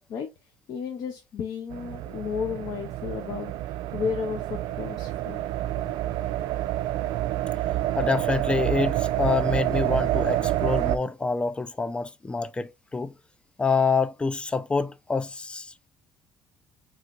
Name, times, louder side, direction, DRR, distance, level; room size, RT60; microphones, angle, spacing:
voice 1, 0.1-5.5 5.8-6.0, left 7 dB, 60° left, 0.7 m, -33 dB
sound 1, 1.7-11.0, right 14 dB, 85° right, 0.3 m, -28 dB
voice 2, 8.0-13.1 13.6-15.9, left 4 dB, 15° left, 0.4 m, -27 dB
3.8 x 3.1 x 2.8 m
cardioid pair, 120°, 8 cm